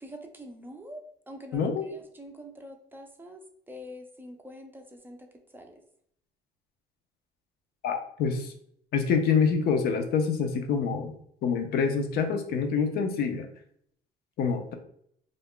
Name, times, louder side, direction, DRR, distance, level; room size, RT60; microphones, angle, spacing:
voice 1, 0.0-5.3 5.5-5.8 14.5-14.6, equal, 10° right, 3 dB, 0.4 m, -45 dB
voice 2, 1.5-1.9 7.8-8.5 8.9-11.1 11.4-13.5 14.4-14.7, left 6 dB, 65° left, 6 dB, 0.5 m, -26 dB
2.4 x 2.1 x 3.6 m, 0.67 s
cardioid pair, 110°, 17 cm